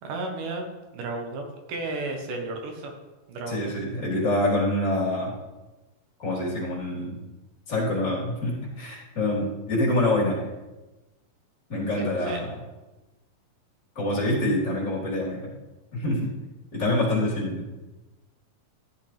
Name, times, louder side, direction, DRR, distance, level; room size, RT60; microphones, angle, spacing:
voice 1, 0.0-0.7 0.9-2.9 3.3-3.7 11.9-12.4, right 2 dB, 85° right, 2 dB, 3.1 m, -33 dB
voice 2, 3.5-5.3 6.2-7.2 7.7-10.4 11.7-12.6 14.0-15.5 15.9-16.4 16.7-17.6, left 1 dB, 25° left, -6 dB, 4.0 m, -26 dB
14.5 x 8.1 x 3.4 m, 1.1 s
omnidirectional pair, 3.7 m